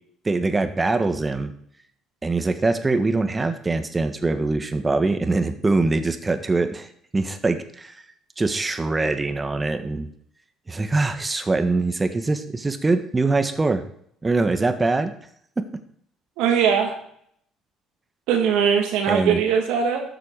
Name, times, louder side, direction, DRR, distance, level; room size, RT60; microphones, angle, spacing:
voice 1, 0.2-1.5 2.2-6.9 7.1-8.0 8.4-10.1 10.7-13.8 14.2-15.1 15.6-15.7 19.1-19.4, right 3 dB, 25° right, 9 dB, 1.5 m, -23 dB
voice 2, 16.4-16.9 18.3-20.0, right 7 dB, 80° right, 3 dB, 2.3 m, -20 dB
13.0 x 6.7 x 4.9 m, 0.66 s
supercardioid pair, 70°, 0 cm